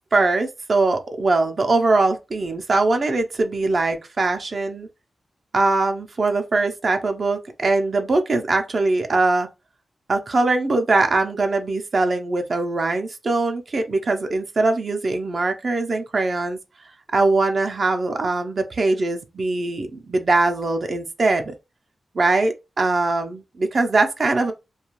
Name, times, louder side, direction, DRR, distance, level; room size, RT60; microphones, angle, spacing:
voice 1, 0.1-4.9 5.5-9.5 10.1-16.6 17.1-21.5 22.1-24.5, right 3 dB, 55° right, 0.5 m, -21 dB
2.3 x 2.3 x 3.0 m
cardioid pair, 60°, 0 cm